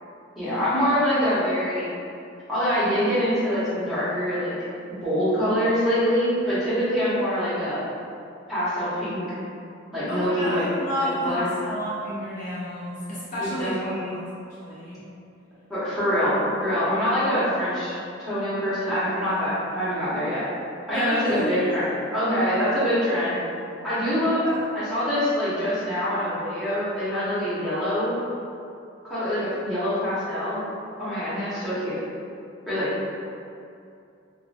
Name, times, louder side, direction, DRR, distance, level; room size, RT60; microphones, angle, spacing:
voice 1, 0.4-2.0 2.5-4.5 5.0-7.8 8.5-9.2 9.9-10.7 11.2-11.5 13.4-14.1 15.7-20.4 20.9-23.4 23.8-24.5 24.7-28.1 29.0-30.6 31.0-32.0 32.7-32.9, equal, ahead, -14 dB, 1.1 m, -25 dB
voice 2, 10.1-14.3 14.6-15.0 20.9-21.8 24.4-24.6, equal, 40° left, -10 dB, 0.6 m, -30 dB
3.5 x 2.2 x 2.6 m, 2.5 s
head